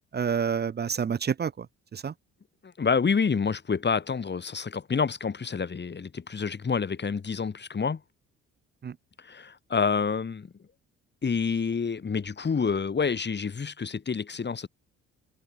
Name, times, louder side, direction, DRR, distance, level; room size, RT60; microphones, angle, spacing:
voice 1, 0.0-1.7 1.9-2.1 8.8-8.9, right 7 dB, 35° right, 0.8 m, -28 dB
voice 2, 2.6-8.0 9.2-10.5 11.2-14.7, left 5 dB, 35° left, 4.9 m, -28 dB
supercardioid pair, 75°, 29 cm